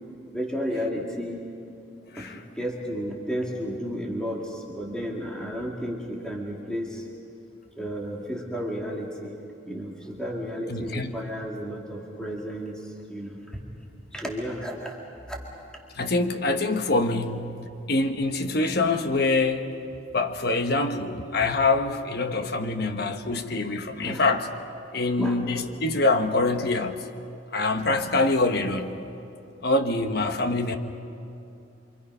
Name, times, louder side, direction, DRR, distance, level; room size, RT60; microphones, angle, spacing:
voice 1, 0.3-1.4 2.2-2.3 2.6-7.0 7.8-9.3 9.7-12.8 13.1-13.4 14.1-14.9 15.3-15.4 17.1-17.2 24.0-24.2 25.2-25.4, equal, 5° left, -2 dB, 2.3 m, -32 dB
voice 2, 10.7-11.1 16.0-19.7 20.1-24.5 24.9-27.1 27.5-29.0 29.6-30.8, left 2 dB, 60° left, 7 dB, 1.2 m, -25 dB
28.5 x 25.5 x 5.6 m, 2.7 s
head